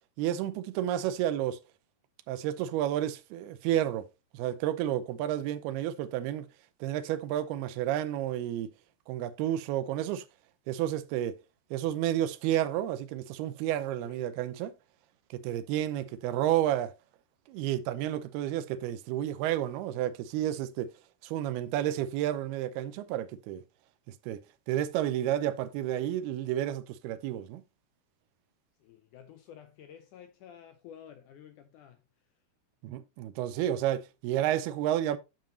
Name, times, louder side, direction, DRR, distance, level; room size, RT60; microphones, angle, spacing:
voice 1, 0.2-1.6 2.3-4.1 4.3-6.5 6.8-8.7 9.1-10.3 10.7-11.4 11.7-14.7 15.3-16.9 17.5-20.9 21.2-23.6 24.2-24.4 24.7-27.6 32.8-35.2, right 12 dB, 90° right, 2.7 m, -31 dB
voice 2, 28.8-32.3, left 9 dB, 80° left, 1.8 m, -51 dB
9.0 x 7.5 x 3.1 m
omnidirectional pair, 4.4 m